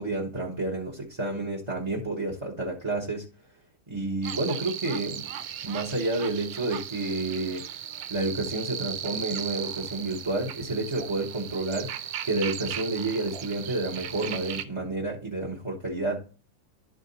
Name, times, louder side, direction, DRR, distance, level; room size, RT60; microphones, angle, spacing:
voice 1, 0.0-3.3 3.9-5.3 5.6-7.6 8.1-16.2, right 2 dB, 20° right, -1 dB, 0.8 m, -30 dB
sound 1, 4.2-14.6, right 10 dB, 85° right, 1.4 m, -37 dB
11.0 x 3.8 x 4.0 m, 0.34 s
omnidirectional pair, 2.1 m